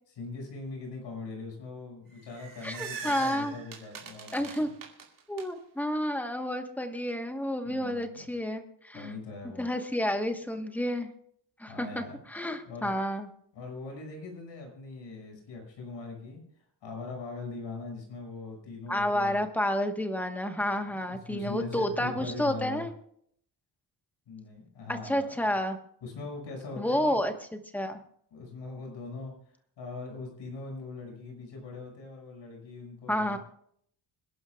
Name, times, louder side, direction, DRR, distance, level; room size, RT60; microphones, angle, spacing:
voice 1, 0.1-4.7 7.6-8.3 8.9-9.7 11.7-12.2 12.6-13.0 13.5-16.4 16.8-19.4 20.6-22.9 24.3-25.3 26.0-27.2 28.3-29.3 29.8-33.4, left 3 dB, 80° left, 1 dB, 5.9 m, -41 dB
sound 1, 2.1-5.4, right 6 dB, 50° right, 2.5 m, -42 dB
voice 2, 2.6-3.5 4.3-4.7 5.3-9.1 9.6-11.1 11.6-13.3 18.9-22.9 24.9-25.8 26.8-27.3 27.7-28.0 33.1-33.4, equal, 5° left, 6 dB, 1.2 m, -30 dB
27.0 x 11.5 x 2.3 m, 0.65 s
wide cardioid pair, 170°, 43 cm